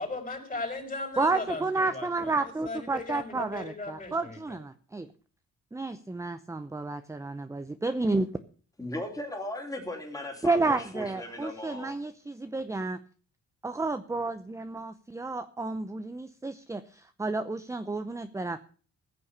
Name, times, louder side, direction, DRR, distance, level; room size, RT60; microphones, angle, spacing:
voice 1, 0.0-4.6, left 3 dB, 25° left, 4 dB, 5.4 m, -37 dB
voice 2, 1.2-5.1 5.7-8.3 10.4-13.0 13.6-18.7, right 3 dB, 10° right, 10 dB, 0.7 m, -31 dB
voice 3, 8.8-12.0, left 1 dB, 10° left, 2 dB, 3.4 m, -37 dB
15.5 x 7.0 x 6.8 m, 0.42 s
cardioid pair, 90°, 30 cm